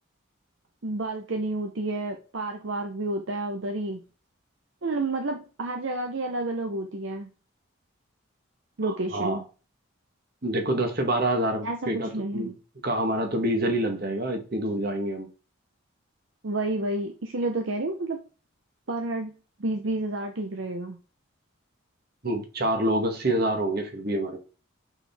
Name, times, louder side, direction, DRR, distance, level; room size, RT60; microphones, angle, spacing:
voice 1, 0.8-4.0 4.8-7.3 8.8-9.4 11.6-12.5 16.4-18.2 18.9-19.3 19.6-21.0, right 2 dB, 65° right, 0.7 m, -30 dB
voice 2, 8.8-9.4 10.4-12.5 12.8-15.3 22.2-24.4, right 1 dB, 45° right, 1.2 m, -27 dB
6.0 x 4.8 x 3.4 m
head